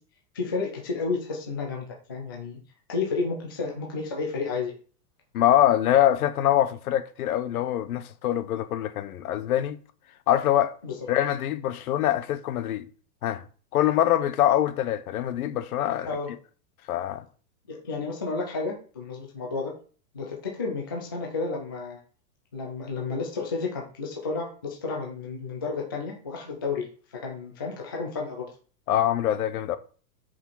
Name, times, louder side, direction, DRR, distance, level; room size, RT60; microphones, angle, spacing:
voice 1, 0.3-2.6 2.9-4.7 10.8-10.9 16.0-16.3 17.7-19.7 20.1-22.0 22.5-26.9 27.1-28.5, left 4 dB, 15° left, 0.3 m, -31 dB
voice 2, 5.3-9.8 10.3-10.7 11.1-12.9 13.2-13.4 13.7-16.2 16.9-17.2 28.9-29.8, left 12 dB, 60° left, 1.0 m, -24 dB
6.6 x 5.1 x 5.4 m
supercardioid pair, 160°, 48 cm